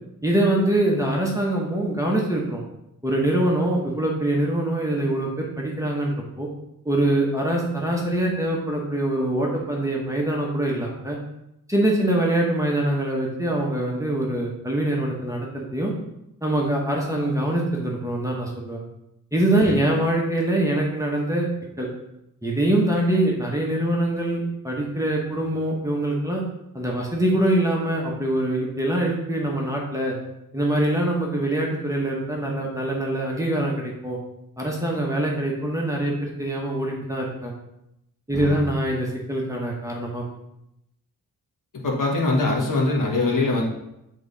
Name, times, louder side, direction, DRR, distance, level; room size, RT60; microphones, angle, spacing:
voice 1, 0.2-2.6 3.0-6.5 6.8-11.2 11.7-15.9 16.4-18.8 19.3-21.5 21.8-21.9 22.4-26.4 26.7-30.1 30.5-34.2 34.6-37.5 38.3-40.3, right 1 dB, 10° right, -2 dB, 1.0 m, -24 dB
voice 2, 38.3-38.6 41.8-43.6, left 3 dB, 60° left, -1 dB, 1.3 m, -22 dB
7.8 x 3.7 x 3.9 m, 0.85 s
wide cardioid pair, 160°, 36 cm